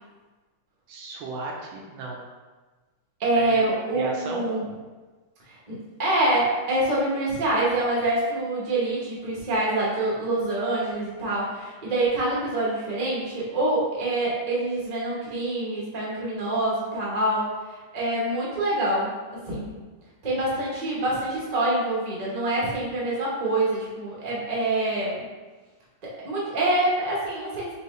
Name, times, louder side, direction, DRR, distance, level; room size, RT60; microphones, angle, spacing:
voice 1, 0.9-2.2 3.4-3.7 3.9-4.5, right 3 dB, 80° right, -1 dB, 1.4 m, -34 dB
voice 2, 3.2-4.7 5.5-17.5 17.9-19.7 20.2-25.3 26.0-27.7, right 2 dB, 30° right, -6 dB, 0.7 m, -26 dB
4.6 x 2.9 x 3.1 m, 1.3 s
omnidirectional pair, 2.2 m